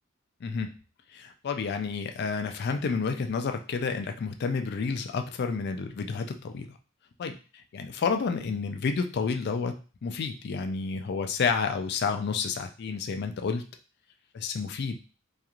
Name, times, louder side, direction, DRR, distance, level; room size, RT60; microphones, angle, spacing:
voice 1, 0.4-0.7 1.1-6.7 7.2-13.7 14.3-15.0, left 5 dB, 55° left, 7 dB, 0.4 m, -30 dB
2.9 x 2.4 x 2.4 m, 0.34 s
head